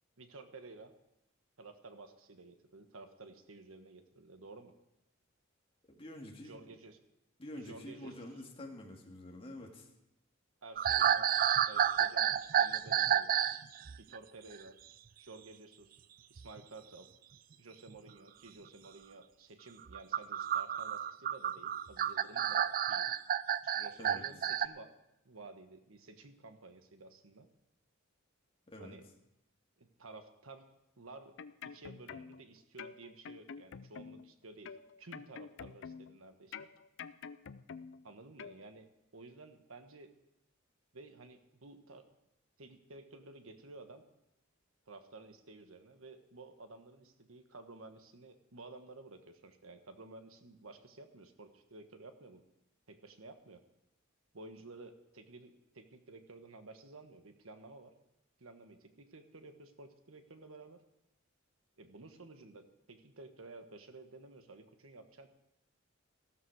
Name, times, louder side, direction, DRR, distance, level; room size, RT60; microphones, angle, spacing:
voice 1, 0.2-0.9 1.6-4.7 6.4-7.0 7.5-8.2 10.6-11.3 11.7-13.4 14.0-14.8 15.2-16.0 16.3-17.1 17.6-23.1 23.6-24.9 25.2-27.5 28.8-29.0 29.8-30.7 31.0-31.4 31.6-36.7 38.0-40.1 40.9-42.1 42.6-44.0 44.9-52.4 52.9-53.6 54.3-57.9 58.4-60.8 61.8-65.3, right 3 dB, 85° right, 8 dB, 1.3 m, -53 dB
voice 2, 5.9-6.6 7.4-9.9 24.0-24.3 28.7-29.0, left 1 dB, 30° left, 1 dB, 2.0 m, -47 dB
sound 1, 10.8-13.6 13.9-14.2 16.4-16.6 17.9-18.0 19.9-24.7, right 9 dB, 45° right, 0.4 m, -30 dB
sound 2, 31.2-32.4 32.8-34.3 34.6-36.2 36.5-38.0 38.4-38.6, left 6 dB, 65° left, 0.5 m, -47 dB
14.5 x 13.0 x 4.8 m, 0.87 s
head